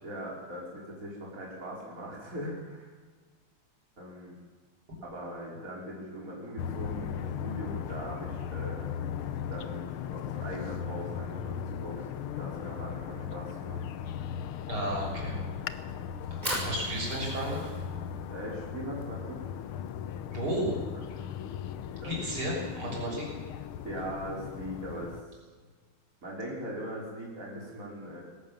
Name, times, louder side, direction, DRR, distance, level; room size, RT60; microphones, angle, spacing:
voice 1, 0.0-2.9 4.0-4.4 5.0-8.8 9.5-13.8 18.3-19.5 20.9-21.3 22.0-22.2 23.8-25.2 26.2-28.2, equal, 40° right, -4 dB, 5.2 m, -40 dB
sound 1, 6.6-25.2, left 8 dB, 80° left, 1.7 m, -37 dB
voice 2, 14.7-15.4 16.3-17.7 20.3-20.8 22.0-23.3, right 1 dB, 85° right, -2 dB, 7.6 m, -33 dB
Fire, 16.3-22.3, equal, 20° right, 5.9 m, -41 dB
20.0 x 17.5 x 7.5 m, 1.5 s
omnidirectional pair, 2.3 m